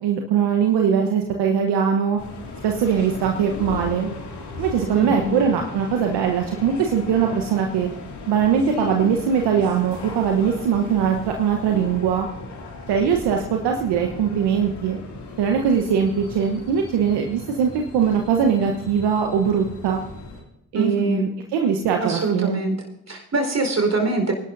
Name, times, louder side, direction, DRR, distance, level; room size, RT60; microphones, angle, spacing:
voice 1, 0.0-2.2 2.6-4.1 4.6-7.9 8.3-12.3 12.9-15.0 15.4-20.0 20.7-22.6, right 7 dB, 75° right, 3 dB, 1.1 m, -21 dB
sound 1, 2.2-20.4, left 3 dB, 75° left, 2.7 m, -37 dB
voice 2, 4.9-5.4 20.7-21.3 22.0-22.7 23.1-24.3, right 2 dB, 40° right, 3 dB, 4.4 m, -23 dB
24.0 x 11.5 x 2.7 m, 0.88 s
hypercardioid pair, 40°, 41 cm